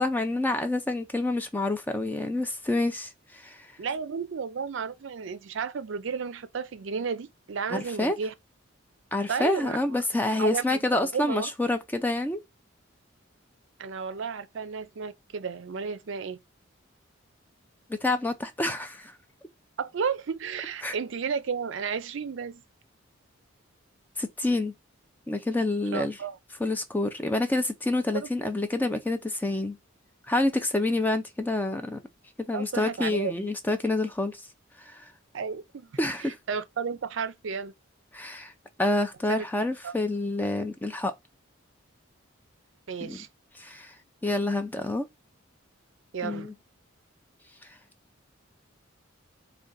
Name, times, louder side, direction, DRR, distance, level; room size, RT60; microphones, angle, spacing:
voice 1, 0.0-3.7 7.7-8.2 9.1-12.4 18.0-19.1 20.8-20.9 24.2-24.7 25.3-26.2 26.6-29.8 30.3-32.0 32.5-34.4 34.8-35.1 36.0-36.4 38.1-38.5 38.8-41.1 43.0-43.2 43.6-43.9 44.2-45.1 46.2-46.5, left 2 dB, 10° left, 0.3 m, -28 dB
voice 2, 3.8-8.3 9.3-9.8 10.4-11.5 13.8-16.4 19.8-22.6 25.9-26.4 28.1-28.3 32.5-33.5 35.3-37.7 39.3-39.5 39.8-39.9 42.9-43.3 46.1-46.5, right 6 dB, 65° right, 0.4 m, -33 dB
3.7 x 2.2 x 3.8 m
head